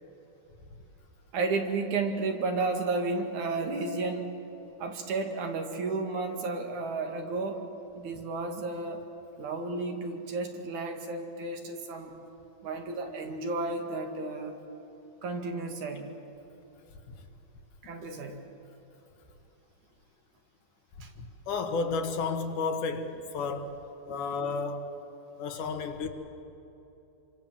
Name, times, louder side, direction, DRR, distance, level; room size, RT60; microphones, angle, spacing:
voice 1, 1.3-4.4 4.8-7.6 7.9-9.0 9.4-12.1 12.6-14.6 15.2-16.1 17.8-18.4 21.0-21.1 24.1-24.2, right 3 dB, 65° right, 4 dB, 3.3 m, -32 dB
voice 2, 21.2-23.8 24.0-24.9 25.4-26.1, left 4 dB, 70° left, 5 dB, 3.0 m, -32 dB
27.5 x 25.0 x 7.5 m, 3.0 s
omnidirectional pair, 3.8 m